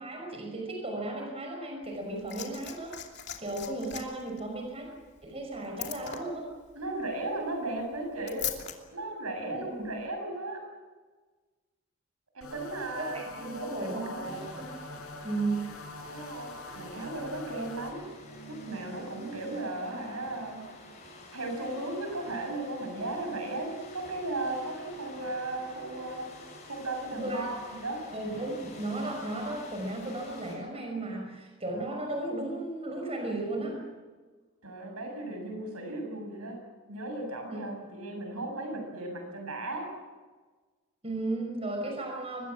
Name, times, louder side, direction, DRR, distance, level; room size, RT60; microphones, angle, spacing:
voice 1, 0.0-3.0 3.4-4.9 5.2-6.5 9.5-9.9 13.0-14.7 15.2-15.6 27.1-27.5 28.1-33.7 37.5-37.6 41.0-42.5, right 2 dB, 25° right, 1 dB, 5.9 m, -35 dB
Liquid, 1.8-8.8 9.8-9.9, left 11 dB, 50° left, 2.8 m, -41 dB
voice 2, 6.7-8.5 8.9-10.6 12.3-14.5 16.1-18.1 18.5-20.6 21.3-26.3 26.6-28.0 34.6-36.6 36.9-39.9, right 2 dB, 85° right, 3 dB, 7.8 m, -36 dB
sound 1, 12.4-17.9, left 2 dB, 85° left, 5.1 m, -45 dB
sound 2, 14.2-30.6, left 1 dB, 30° left, 7.8 m, -48 dB
23.5 x 21.5 x 7.5 m, 1.3 s
head